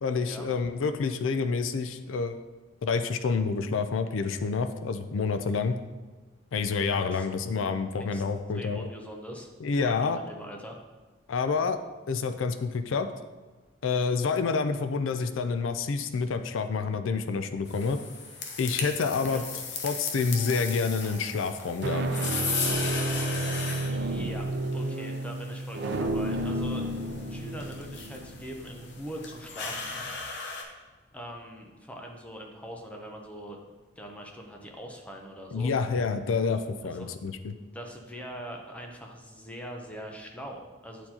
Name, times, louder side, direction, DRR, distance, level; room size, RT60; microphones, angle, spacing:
voice 1, 0.0-2.3 2.8-5.8 6.5-8.9 9.6-10.2 11.3-11.8 12.1-13.1 13.8-18.0 18.6-19.4 19.8-22.1 35.5-37.6, left 5 dB, 85° left, 9 dB, 0.4 m, -28 dB
voice 2, 8.5-9.5 9.8-10.8 19.1-19.4 23.8-24.5 24.7-26.8 27.3-30.0 31.1-33.6 34.0-35.7 36.8-37.1 37.7-41.1, equal, 5° left, 1 dB, 0.6 m, -42 dB
sound 1, 17.7-30.6, left 4 dB, 65° left, 0.8 m, -37 dB
sound 2, 20.3-20.8 21.6-30.2, right 1 dB, 60° right, 0.5 m, -32 dB
9.0 x 4.5 x 2.8 m, 1.3 s
head